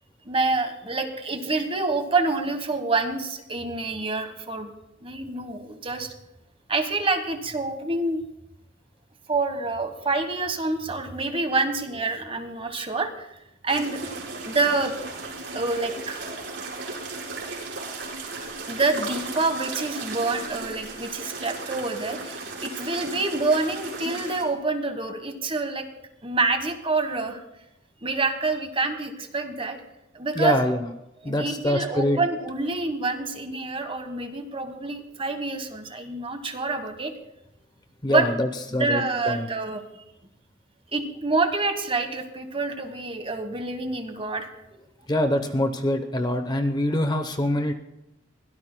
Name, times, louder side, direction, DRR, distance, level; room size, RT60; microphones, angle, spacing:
voice 1, 0.2-4.7 5.0-6.1 6.7-8.2 9.3-13.3 13.6-14.0 14.4-15.0 15.5-16.3 18.7-25.9 26.2-27.4 28.0-29.8 30.1-30.6 31.2-37.1 38.1-38.3 38.8-39.8 40.9-44.8, right 3 dB, 30° right, 7 dB, 1.3 m, -27 dB
sound 1, 13.7-24.4, right 3 dB, 70° right, 4.8 m, -36 dB
voice 2, 30.3-30.9 31.2-32.2 38.0-39.5 45.1-47.7, left 1 dB, 20° left, 8 dB, 0.8 m, -24 dB
22.5 x 17.0 x 2.2 m, 0.88 s
head